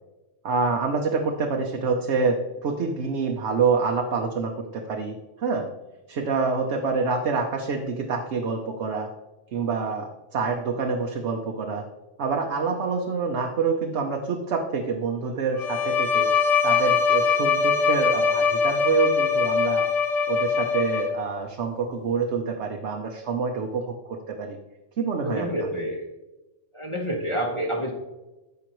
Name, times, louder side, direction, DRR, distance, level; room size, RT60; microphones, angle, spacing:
voice 1, 0.4-5.7 6.1-9.1 9.5-11.8 12.2-16.3 16.6-19.8 20.3-24.6 25.0-25.7, right 4 dB, 70° right, 2 dB, 1.1 m, -27 dB
Bowed string instrument, 15.6-21.4, left 5 dB, 85° left, 1.3 m, -22 dB
voice 2, 25.2-26.1 26.7-27.9, equal, 25° left, -1 dB, 1.2 m, -28 dB
13.5 x 5.6 x 3.1 m, 1.1 s
omnidirectional pair, 1.2 m